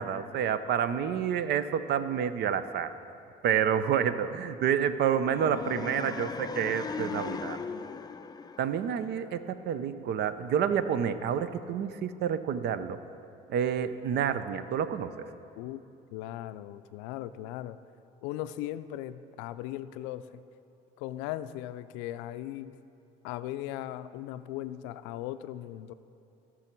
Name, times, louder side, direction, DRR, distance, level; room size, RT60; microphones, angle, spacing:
voice 1, 0.0-2.9 3.4-7.6 8.6-13.0 13.5-15.1, right 8 dB, 60° right, 12 dB, 0.6 m, -29 dB
sound 1, 5.3-9.4, left 5 dB, 20° left, 0.4 m, -38 dB
voice 2, 16.1-17.8 18.2-20.4 21.0-22.8 23.2-25.9, left 13 dB, 85° left, 13 dB, 0.4 m, -38 dB
17.0 x 6.2 x 4.5 m, 2.7 s
supercardioid pair, 85°, 19 cm